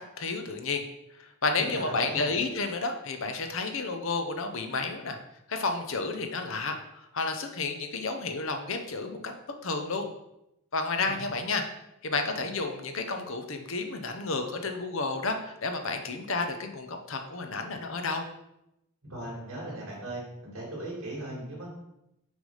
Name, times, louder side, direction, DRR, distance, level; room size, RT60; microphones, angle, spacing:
voice 1, 0.2-0.8 1.2-5.2 5.5-9.3 9.6-10.1 10.7-11.6 12.0-18.2, left 3 dB, 60° left, 6 dB, 0.8 m, -31 dB
voice 2, 1.5-2.3 11.1-11.2 19.0-21.7, right 1 dB, 60° right, -6 dB, 2.5 m, -38 dB
6.2 x 3.4 x 5.5 m, 0.85 s
head